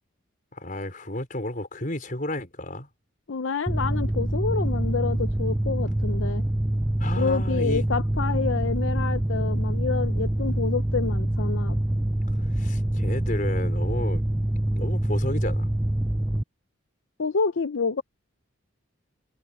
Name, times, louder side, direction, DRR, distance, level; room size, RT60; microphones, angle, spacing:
voice 1, 0.5-2.9 7.0-7.8 12.5-14.2 14.7-15.7, left 1 dB, 45° left, 4.6 m, -32 dB
voice 2, 3.3-6.4 7.1-11.8 17.2-18.0, left 5 dB, 70° left, 0.6 m, -28 dB
Mechanical fan, 3.7-16.4, right 1 dB, 5° right, 0.3 m, -25 dB
head